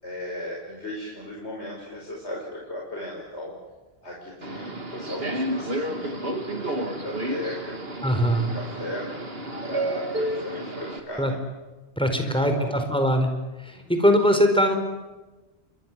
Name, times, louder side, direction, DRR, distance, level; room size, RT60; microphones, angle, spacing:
voice 1, 0.0-3.5 4.0-9.0 9.6-11.4 12.2-12.8 13.7-14.0, left 1 dB, 90° left, -2 dB, 5.6 m, -36 dB
Subway metro underground, 4.4-11.0, right 1 dB, 60° right, 2.9 m, -31 dB
voice 2, 8.0-8.5 11.2-11.3 12.0-13.3 13.6-14.7, equal, 5° left, 5 dB, 4.6 m, -21 dB
29.5 x 24.5 x 7.6 m, 1.1 s
omnidirectional pair, 1.1 m